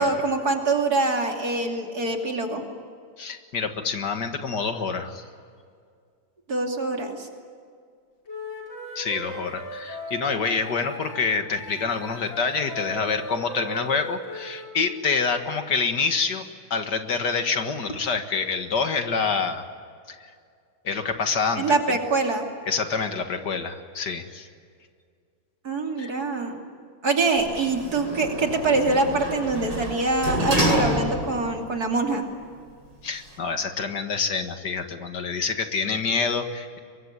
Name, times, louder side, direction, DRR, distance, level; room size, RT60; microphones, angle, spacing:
voice 1, 0.0-2.6 6.5-7.3 21.6-22.5 25.6-26.6 27.0-32.2, right 3 dB, 55° right, 3 dB, 3.3 m, -24 dB
voice 2, 3.2-5.2 9.0-16.4 16.7-19.6 20.8-21.8 22.7-24.5 26.0-26.1 33.0-36.8, left 5 dB, 65° left, 7 dB, 2.2 m, -27 dB
Wind instrument woodwind instrument, 8.3-11.2 11.5-14.7, left 1 dB, 85° left, 6.3 m, -38 dB
Sliding door, 27.4-31.5 31.9-32.0, equal, 70° right, 7.8 m, -27 dB
24.0 x 23.0 x 9.7 m, 2.2 s
omnidirectional pair, 2.0 m